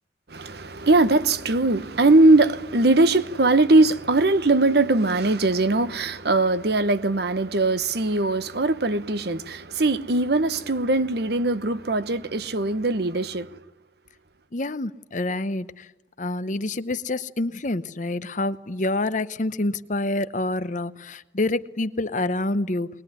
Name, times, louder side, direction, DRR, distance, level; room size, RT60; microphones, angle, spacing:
voice 1, 0.3-13.5, right 2 dB, 55° right, 1.0 m, -20 dB
voice 2, 14.5-15.9 16.2-22.9, left 2 dB, 40° left, 0.9 m, -27 dB
22.0 x 21.0 x 9.8 m
head